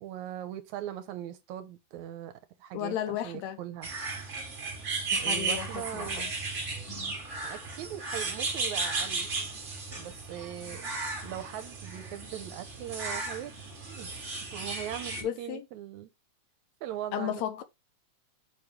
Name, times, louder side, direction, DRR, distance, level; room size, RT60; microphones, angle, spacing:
voice 1, 0.0-2.3 2.6-3.9 5.2-6.2 7.4-9.3 10.0-10.9 11.2-13.5 13.9-14.2 14.5-16.1 16.8-17.4, right 11 dB, 80° right, 2.1 m, -40 dB
voice 2, 2.7-3.6 5.1-6.3 6.9-7.1 15.2-15.7 17.1-17.6, left 11 dB, 75° left, 1.9 m, -34 dB
sound 1, 3.8-15.2, right 3 dB, 30° right, 1.5 m, -35 dB
6.9 x 3.1 x 5.1 m
omnidirectional pair, 3.4 m